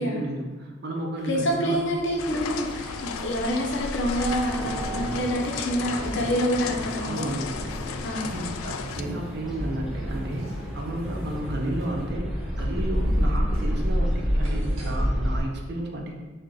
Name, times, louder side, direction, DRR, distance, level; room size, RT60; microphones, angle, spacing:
voice 1, 0.0-1.8 7.0-7.5 8.2-16.2, right 1 dB, 50° right, 0 dB, 0.6 m, -32 dB
voice 2, 1.2-7.3 8.0-8.3, equal, 60° left, 0 dB, 0.8 m, -27 dB
sound 1, 1.2-15.0, right 2 dB, 75° right, 1.0 m, -43 dB
sound 2, 2.0-15.4, equal, ahead, 0.6 m, -30 dB
sound 3, 2.2-9.0, left 6 dB, 90° left, 0.3 m, -35 dB
4.4 x 2.4 x 4.6 m, 1.2 s
head